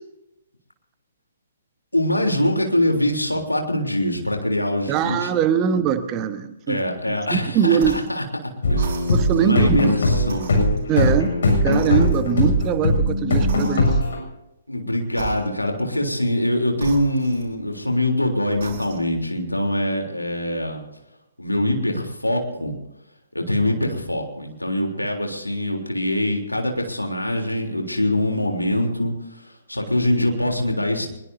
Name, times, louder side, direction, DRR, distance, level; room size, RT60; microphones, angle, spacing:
voice 1, 1.9-5.8 6.7-9.0 9.3-10.5 14.7-20.8 21.4-22.7 23.3-31.1, left 1 dB, 85° left, 2 dB, 3.6 m, -24 dB
voice 2, 4.9-6.8 7.3-8.0 9.1-10.0 10.9-11.3 11.6-14.0, right 9 dB, 25° right, 10 dB, 1.3 m, -22 dB
sound 1, 7.7-8.2 8.7-9.5 10.2-11.4 11.7-12.5 13.5-14.2 15.1-15.8 16.7-17.9 18.5-19.2, right 7 dB, 40° right, 5.5 m, -37 dB
sound 2, 8.6-14.2, left 1 dB, 55° left, 7.0 m, -20 dB
23.5 x 22.0 x 2.8 m, 0.91 s
figure-of-eight pair, 130°, 0 cm